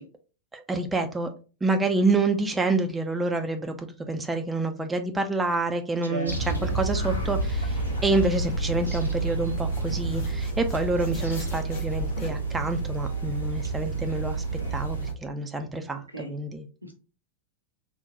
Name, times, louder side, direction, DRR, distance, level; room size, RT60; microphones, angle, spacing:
voice 1, 0.5-1.3 1.6-6.3 6.6-14.4 14.7-16.6, right 2 dB, 10° right, 0.4 m, -27 dB
voice 2, 6.0-6.6 16.1-16.3 16.8-16.9, right 2 dB, 85° right, 0.7 m, -35 dB
sound 1, 6.3-15.1, right 4 dB, 90° left, 0.8 m, -29 dB
sound 2, 6.5-12.3, left 7 dB, 55° left, 1.1 m, -37 dB
3.6 x 2.2 x 2.7 m
figure-of-eight pair, 90°, 0 cm